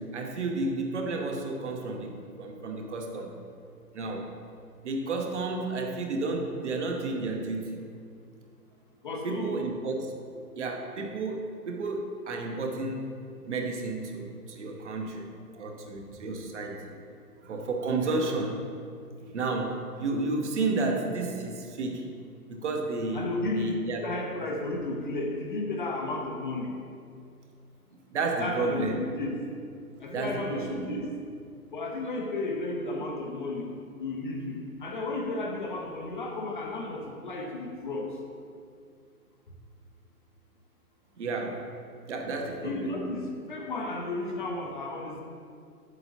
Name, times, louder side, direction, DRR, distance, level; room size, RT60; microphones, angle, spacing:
voice 1, 0.0-3.4 3.9-4.3 4.8-7.8 9.2-10.1 10.6-13.1 13.4-17.0 17.4-18.6 19.3-22.1 22.5-23.3 23.5-24.1 28.1-29.0 30.1-30.9 41.2-41.6 42.1-43.0, right 3 dB, 50° right, 2 dB, 1.0 m, -32 dB
voice 2, 9.0-9.6 23.1-23.7 24.0-26.7 28.4-29.3 30.0-31.1 31.7-33.7 34.0-38.1 42.6-45.2, left 2 dB, 35° left, 0 dB, 0.7 m, -33 dB
7.9 x 7.8 x 2.8 m, 2.3 s
figure-of-eight pair, 130°, 47 cm